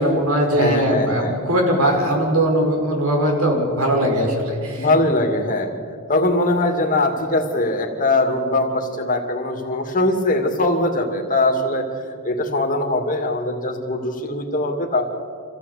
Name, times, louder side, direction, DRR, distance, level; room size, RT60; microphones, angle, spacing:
voice 1, 0.0-4.9, right 1 dB, 85° right, 1 dB, 5.6 m, -20 dB
voice 2, 0.5-1.4 4.8-5.7 6.1-11.9 12.2-15.0, left 2 dB, 40° left, 3 dB, 2.4 m, -21 dB
26.5 x 15.5 x 8.4 m, 2.2 s
head